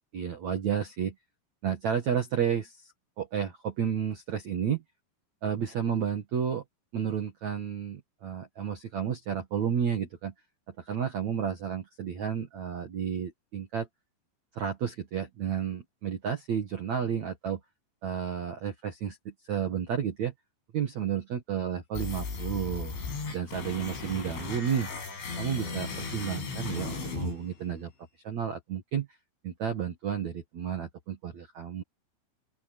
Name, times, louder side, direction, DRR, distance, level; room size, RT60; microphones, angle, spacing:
voice 1, 0.1-1.1 1.6-2.9 3.2-4.8 5.4-6.6 6.9-10.3 10.8-13.9 14.5-17.6 18.0-20.3 20.7-22.9 23.3-24.9 25.4-27.9 28.2-29.1 29.4-31.8, right 8 dB, 70° right, 1.7 m, -31 dB
sound 1, 22.0-28.0, left 4 dB, 65° left, 9.6 m, -36 dB
open air
omnidirectional pair, 5.9 m